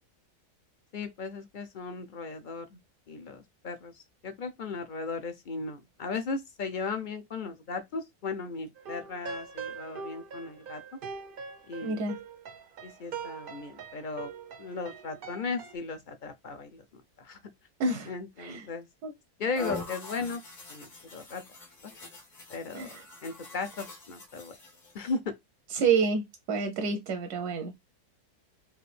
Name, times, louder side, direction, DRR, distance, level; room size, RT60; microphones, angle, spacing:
voice 1, 0.9-2.8 3.1-10.8 11.7-12.0 12.8-14.3 14.6-17.4 18.1-18.9 19.4-20.4 20.7-21.4 21.8-21.9 22.5-22.9 23.2-24.5 24.9-25.2, left 4 dB, 55° left, 0.5 m, -36 dB
sound 1, 8.8-15.7, right 5 dB, 60° right, 0.5 m, -42 dB
voice 2, 11.8-12.2 17.8-18.1 18.4-18.7 19.0-19.1 22.7-23.0 25.7-27.7, right 4 dB, 80° right, 1.3 m, -28 dB
sound 2, 19.6-25.0, left 3 dB, 80° left, 2.2 m, -43 dB
4.8 x 2.6 x 3.3 m
omnidirectional pair, 1.6 m